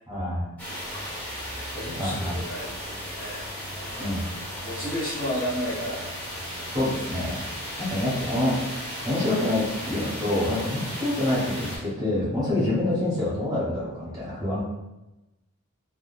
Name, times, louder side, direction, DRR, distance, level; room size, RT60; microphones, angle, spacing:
voice 1, 0.1-0.5 2.0-2.4 4.0-4.3 6.7-7.4 7.8-14.6, left 1 dB, 20° right, -9 dB, 1.1 m, -26 dB
sound 1, 0.6-11.8, equal, 10° left, 0.8 m, -35 dB
voice 2, 0.9-4.1 4.6-6.0 7.6-7.8, equal, 40° left, -7 dB, 0.8 m, -34 dB
3.6 x 2.2 x 2.3 m, 1.0 s
head